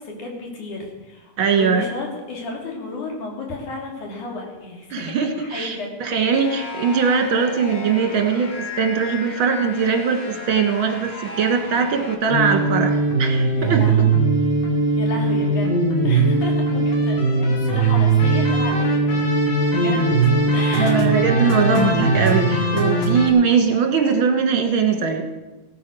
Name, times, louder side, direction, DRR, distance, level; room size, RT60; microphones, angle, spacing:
voice 1, 0.0-5.9 13.6-14.1 15.0-19.2 19.6-20.1 20.5-21.0, left 3 dB, 80° left, 0 dB, 4.2 m, -33 dB
voice 2, 1.4-1.9 4.9-14.1 20.8-25.3, right 6 dB, 50° right, 3 dB, 2.1 m, -21 dB
sound 1, 6.3-12.2, left 3 dB, 30° left, 1.3 m, -34 dB
sound 2, 12.3-23.3, right 2 dB, 60° left, 2.8 m, -19 dB
16.5 x 9.5 x 6.3 m, 1.1 s
omnidirectional pair, 3.5 m